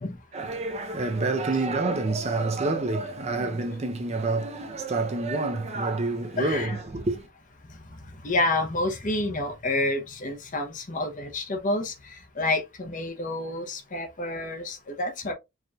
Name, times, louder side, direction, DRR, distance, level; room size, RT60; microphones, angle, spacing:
voice 1, 0.3-7.3, right 3 dB, 30° right, 0.6 m, -28 dB
voice 2, 6.4-6.7 8.2-15.3, left 2 dB, 40° left, 0.8 m, -29 dB
4.8 x 3.0 x 2.3 m
head